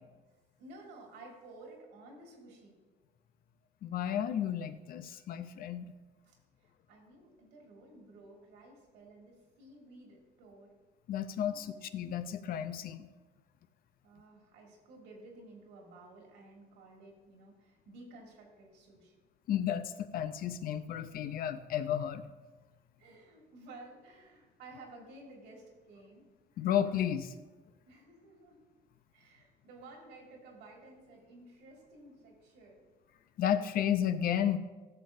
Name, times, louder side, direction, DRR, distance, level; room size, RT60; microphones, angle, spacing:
voice 1, 0.6-2.7 6.2-10.8 11.4-11.8 14.0-19.1 23.0-26.3 27.9-28.6 29.1-32.9, right 2 dB, 90° right, 0 dB, 2.2 m, -54 dB
voice 2, 3.8-5.9 11.1-13.1 19.5-22.2 26.6-27.3 33.4-34.6, left 10 dB, 60° left, 12 dB, 0.6 m, -32 dB
13.5 x 6.8 x 2.7 m, 1.2 s
cardioid pair, 110°, 17 cm